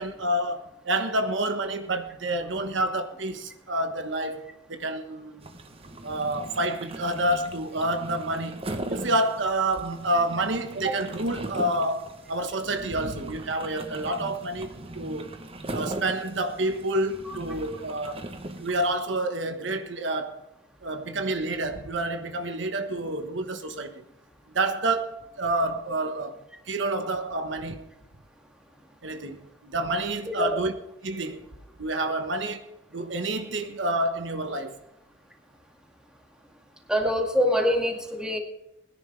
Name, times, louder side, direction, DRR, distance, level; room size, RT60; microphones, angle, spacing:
voice 1, 0.0-5.5 6.0-8.6 8.9-15.3 15.7-18.2 18.6-20.4 20.8-24.0 24.5-26.4 26.7-27.9 29.0-30.7 31.0-31.4 31.8-34.8, right 1 dB, 70° right, 1.2 m, -28 dB
sound 1, 5.4-19.0, right 1 dB, 30° right, 1.0 m, -39 dB
voice 2, 30.3-30.6 36.9-38.4, equal, 5° right, 2.0 m, -24 dB
21.5 x 10.5 x 3.3 m
head